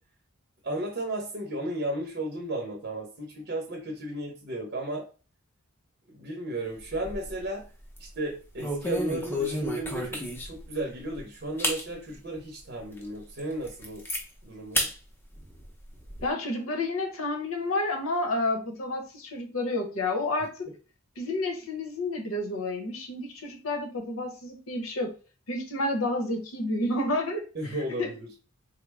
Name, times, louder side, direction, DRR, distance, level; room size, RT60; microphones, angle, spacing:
voice 1, 0.6-5.1 6.1-7.7 8.0-14.0 14.4-14.9 27.5-28.3, right 1 dB, 50° right, 1 dB, 0.7 m, -34 dB
sound 1, 6.8-7.5 7.8-8.1 8.6-10.7 11.1-11.2 11.6-11.8 12.4-12.5 13.0-13.1 13.4-14.2 14.7-14.9 15.3-16.2, left 1 dB, 10° left, 0.5 m, -31 dB
voice 2, 16.2-20.7 21.2-25.1 25.5-27.4 28.0-28.1, left 2 dB, 80° left, 3 dB, 0.9 m, -30 dB
3.7 x 2.1 x 3.4 m, 0.36 s
head